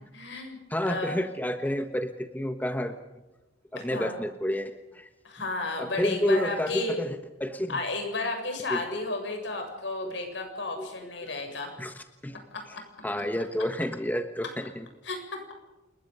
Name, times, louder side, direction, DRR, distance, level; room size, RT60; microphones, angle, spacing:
voice 1, 0.1-0.6 0.9-1.2 3.8-4.2 5.2-7.0 7.7-11.7 12.5-12.6 15.0-15.2, left 2 dB, 70° left, 4 dB, 7.3 m, -33 dB
voice 2, 0.7-2.9 3.7-5.1 5.8-7.8 8.7-9.0 10.0-10.1 10.8-11.1 11.8-12.3 13.0-14.9, left 1 dB, 10° left, 7 dB, 1.2 m, -30 dB
28.5 x 21.5 x 5.5 m, 1.1 s
head